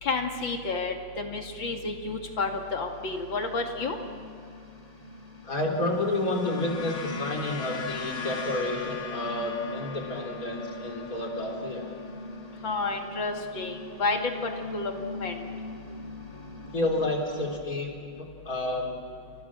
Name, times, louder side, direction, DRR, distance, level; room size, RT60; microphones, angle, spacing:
voice 1, 0.0-4.0 12.6-15.5, left 3 dB, 85° left, 3 dB, 3.1 m, -31 dB
sound 1, 2.0-17.6, left 3 dB, 20° left, 2.2 m, -42 dB
voice 2, 5.4-11.9 16.7-17.9 18.2-19.0, left 1 dB, 45° left, 1 dB, 4.3 m, -30 dB
sound 2, 5.7-14.2, left 6 dB, 70° left, 2.7 m, -40 dB
29.5 x 29.0 x 6.3 m, 2.4 s
omnidirectional pair, 2.0 m